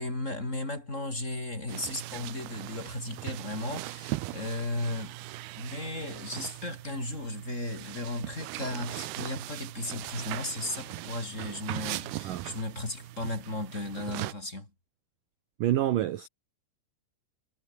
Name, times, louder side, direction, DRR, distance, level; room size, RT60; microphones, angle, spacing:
voice 1, 0.0-5.2 5.6-14.7, left 2 dB, 15° left, 4.2 m, -35 dB
sound 1, 1.7-14.3, right 18 dB, 85° right, 2.3 m, -39 dB
voice 2, 15.6-16.3, right 13 dB, 70° right, 2.0 m, -27 dB
omnidirectional pair, 5.4 m